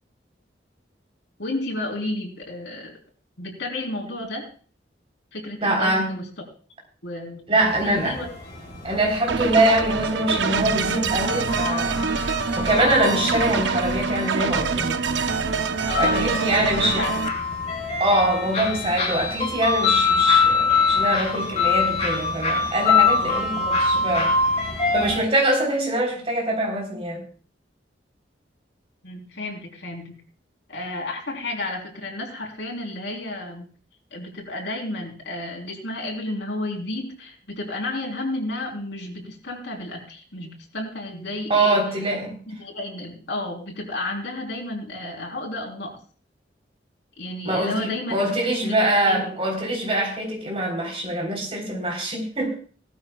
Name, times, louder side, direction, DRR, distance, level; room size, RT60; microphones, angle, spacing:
voice 1, 1.4-3.0 3.4-4.5 5.3-6.3 7.0-8.3 15.9-16.7 17.0-17.2 17.4-17.6 23.1-23.7 29.0-30.2 30.7-33.6 34.1-41.8 42.6-46.0 47.2-48.1 48.6-48.8 49.0-49.4, left 2 dB, 85° left, 3.8 m, -32 dB
voice 2, 5.6-6.1 7.5-8.2 8.8-12.2 12.6-15.0 16.0-17.1 18.0-24.3 24.9-27.2 41.5-42.4 47.4-52.6, right 1 dB, 35° right, 3.8 m, -23 dB
sound 1, 7.6-25.2, left 4 dB, 40° left, 4.6 m, -25 dB
sound 2, 9.3-17.3, right 5 dB, 85° right, 0.7 m, -25 dB
18.0 x 13.0 x 2.4 m
head